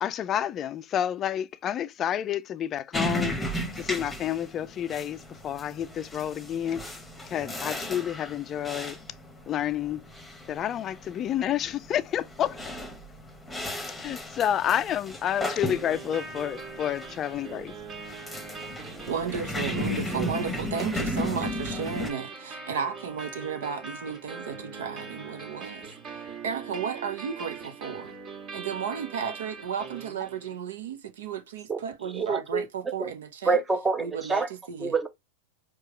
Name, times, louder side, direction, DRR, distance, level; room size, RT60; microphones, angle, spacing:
voice 1, 0.0-7.0 7.3-9.0 9.5-10.0 10.5-12.6 13.9-17.7, left 10 dB, 30° left, 0.4 m, -30 dB
sound 1, 2.9-22.1, left 1 dB, 5° left, 1.1 m, -35 dB
sound 2, 15.7-30.7, right 5 dB, 45° right, 1.9 m, -41 dB
voice 2, 19.1-28.1 28.5-33.6 34.0-34.9, right 7 dB, 70° right, 0.9 m, -34 dB
voice 3, 32.1-32.6 33.0-33.1 33.5-34.5 34.8-35.1, right 4 dB, 15° right, 0.7 m, -26 dB
4.7 x 2.4 x 3.0 m
hypercardioid pair, 100°, 0 cm